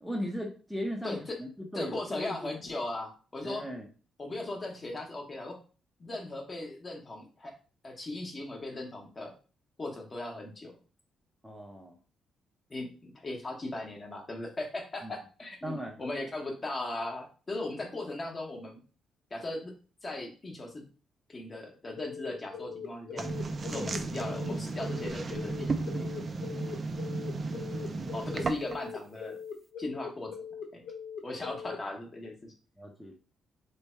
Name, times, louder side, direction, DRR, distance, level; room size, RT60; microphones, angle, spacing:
voice 1, 0.0-2.5 3.4-3.9 11.4-12.0 15.0-15.1 15.6-16.0 23.7-23.9 27.7-28.2 32.8-33.1, equal, ahead, 0 dB, 0.7 m, -38 dB
voice 2, 1.0-1.4 1.7-3.6 4.2-5.6 6.0-7.5 7.8-9.3 9.8-10.7 12.7-18.8 19.3-19.7 20.0-20.8 21.3-23.3 23.6-26.1 28.1-29.4 29.8-30.3 30.7-30.8 31.2-32.5, left 2 dB, 30° left, 1 dB, 1.0 m, -38 dB
sound 1, 22.0-31.8, left 7 dB, 65° left, 1.1 m, -41 dB
sound 2, 23.2-28.9, right 3 dB, 35° right, 0.4 m, -34 dB
3.3 x 2.3 x 4.3 m, 0.36 s
cardioid pair, 120°, 0 cm